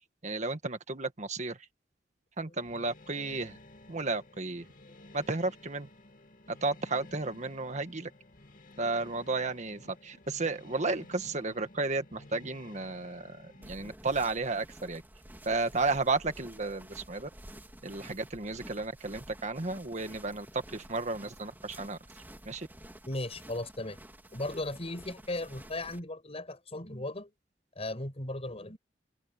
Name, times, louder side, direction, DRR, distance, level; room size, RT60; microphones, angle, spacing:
voice 1, 0.2-1.6 2.4-3.6 3.9-4.7 5.1-5.9 6.5-8.1 8.8-15.0 15.4-17.3 17.8-22.0 22.4-22.7, right 3 dB, 45° right, 1.5 m, -33 dB
sound 1, 2.6-13.9, left 2 dB, 50° left, 2.7 m, -54 dB
sound 2, 13.6-26.0, right 1 dB, 10° right, 2.5 m, -51 dB
voice 2, 23.1-24.0 24.3-27.3 27.8-28.8, left 2 dB, 35° left, 5.7 m, -37 dB
head